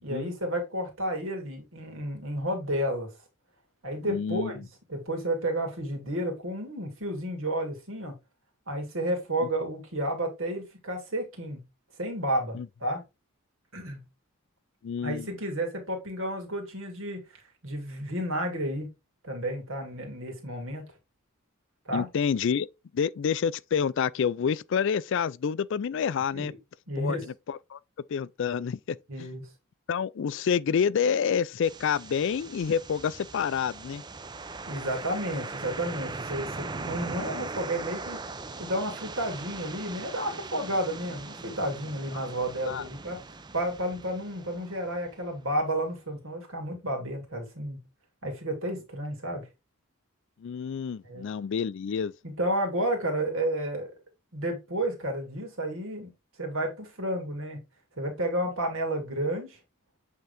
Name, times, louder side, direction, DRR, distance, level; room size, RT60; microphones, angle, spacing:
voice 1, 0.0-3.1 3.8-4.6 4.9-8.2 8.7-11.6 12.0-13.0 13.7-14.0 15.0-18.9 19.2-20.9 21.9-22.1 26.3-26.6 26.9-27.3 29.1-29.5 34.7-38.2 38.6-43.2 43.5-47.8 48.2-49.5 51.0-51.3 52.2-53.9 54.3-56.1 56.4-57.6 58.0-59.6, right 1 dB, 65° right, 2.5 m, -31 dB
voice 2, 4.1-4.5 12.5-12.7 14.8-15.3 21.9-22.7 22.9-26.5 27.0-27.2 27.5-27.8 28.1-29.3 29.9-34.0 42.1-42.2 42.7-42.9 50.4-52.1, left 7 dB, 60° left, 0.3 m, -28 dB
sound 1, 31.6-45.5, right 3 dB, 20° right, 0.5 m, -40 dB
8.1 x 3.8 x 3.4 m
head